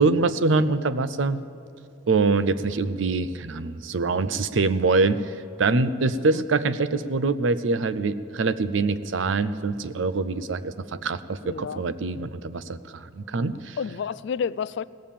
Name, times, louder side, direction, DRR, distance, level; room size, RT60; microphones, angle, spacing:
voice 1, 0.0-1.4 2.1-13.8, right 3 dB, 75° right, 14 dB, 0.6 m, -24 dB
voice 2, 11.4-11.8 13.8-14.8, left 6 dB, 60° left, 18 dB, 0.3 m, -30 dB
17.5 x 7.3 x 8.5 m, 2.7 s
head